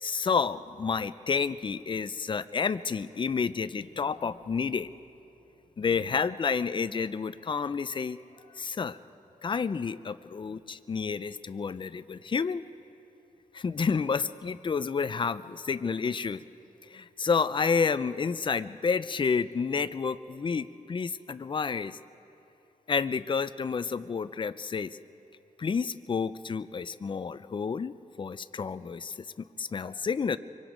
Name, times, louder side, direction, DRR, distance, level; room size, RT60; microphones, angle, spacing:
voice 1, 0.0-4.9 5.8-8.2 8.6-9.0 9.4-12.6 13.5-16.4 16.9-22.0 22.9-25.0 25.6-30.4, left 5 dB, 35° left, 14 dB, 0.5 m, -30 dB
24.5 x 23.5 x 5.1 m, 3.0 s
wide cardioid pair, 120°, 14 cm